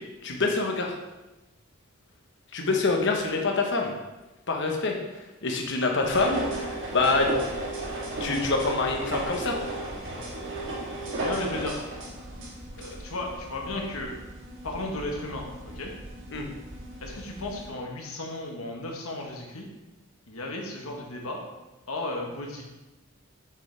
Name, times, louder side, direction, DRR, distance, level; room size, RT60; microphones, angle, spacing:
voice 1, 0.2-0.9 2.5-3.9 4.5-4.9 5.4-7.3 8.2-9.6 16.3-16.5, left 3 dB, 60° left, 1 dB, 1.2 m, -26 dB
sound 1, 6.0-17.7, right 1 dB, 60° right, 1.7 m, -35 dB
voice 2, 11.2-11.8 12.8-14.2 14.6-15.9 17.0-19.7 20.3-21.4 21.9-22.6, left 2 dB, 90° left, 0 dB, 1.4 m, -34 dB
8.1 x 6.6 x 3.4 m, 1.1 s
head